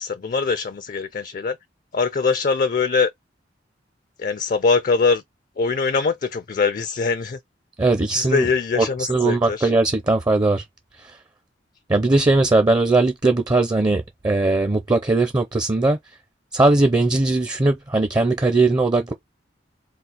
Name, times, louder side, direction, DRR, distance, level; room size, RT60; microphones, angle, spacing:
voice 1, 0.0-1.6 1.9-3.1 4.2-5.2 5.6-7.4 8.1-9.7, left 4 dB, 50° left, 0.4 m, -22 dB
voice 2, 7.8-8.5 8.8-10.6 11.9-16.0 16.5-19.1, right 2 dB, 20° right, 0.5 m, -19 dB
4.0 x 2.4 x 3.9 m
head